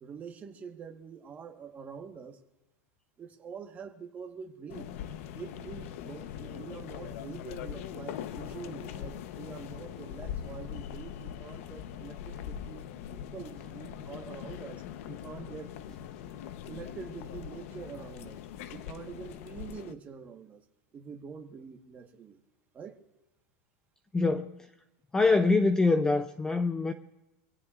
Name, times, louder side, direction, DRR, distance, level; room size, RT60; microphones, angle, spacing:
voice 1, 0.0-2.4 3.2-4.9 5.3-16.0 16.7-18.4 18.7-20.6 20.9-22.4 22.7-23.0, right 6 dB, 20° right, 1.2 m, -45 dB
sound 1, 4.7-19.9, left 10 dB, 65° left, 0.8 m, -41 dB
voice 2, 24.1-24.5 25.1-26.9, left 3 dB, 10° left, 0.4 m, -24 dB
25.0 x 16.5 x 2.4 m
supercardioid pair, 165°, 8 cm